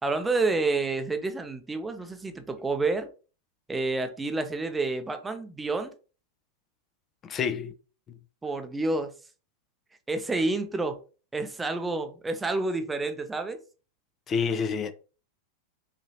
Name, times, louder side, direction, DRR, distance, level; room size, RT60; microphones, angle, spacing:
voice 1, 0.0-3.1 3.7-5.9 8.4-9.1 10.1-11.0 11.3-13.6, right 3 dB, 10° right, 0.6 m, -29 dB
voice 2, 7.2-7.7 14.3-14.9, left 6 dB, 25° left, 0.5 m, -28 dB
5.5 x 2.8 x 2.8 m
figure-of-eight pair, 90°, 0 cm